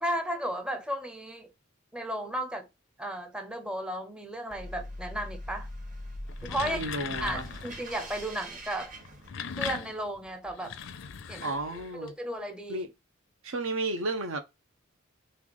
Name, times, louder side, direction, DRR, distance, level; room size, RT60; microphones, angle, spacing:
voice 1, 0.0-1.5 1.9-2.7 3.0-5.7 6.4-6.8 7.2-8.9 9.6-10.8 11.3-11.5 11.9-12.9, right 1 dB, 5° right, 0.5 m, -34 dB
sound 1, 4.5-9.8, equal, 40° right, 1.0 m, -42 dB
sound 2, 6.2-7.9 9.0-12.1, left 7 dB, 65° left, 0.5 m, -39 dB
voice 2, 6.6-7.4 11.4-12.1 12.7-12.9 13.4-14.4, right 2 dB, 75° right, 0.7 m, -32 dB
3.3 x 3.1 x 3.7 m
head